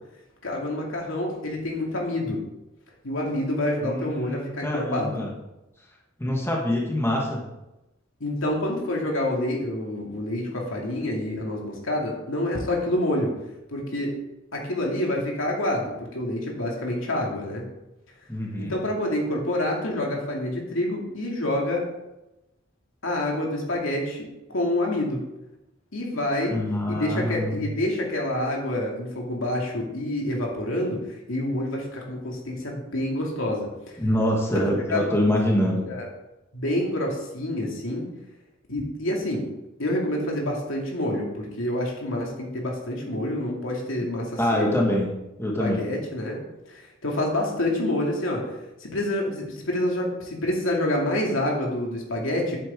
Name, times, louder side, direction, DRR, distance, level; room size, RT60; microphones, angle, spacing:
voice 1, 0.4-2.4 3.0-5.2 8.2-13.3 13.7-14.2 14.5-17.6 18.6-21.8 23.0-25.2 25.9-26.6 26.9-34.0 34.5-34.6 34.9-35.2 35.9-36.1 36.5-38.1 38.7-39.5 39.8-44.8 45.6-46.4 46.7-48.5 48.8-52.6, left 1 dB, 80° left, -1 dB, 2.5 m, -27 dB
voice 2, 3.8-5.3 6.2-7.4 18.3-18.7 26.5-27.6 34.0-35.9 44.4-45.1 45.4-45.8, left 1 dB, 10° left, -2 dB, 1.6 m, -25 dB
10.0 x 8.1 x 3.8 m, 0.94 s
head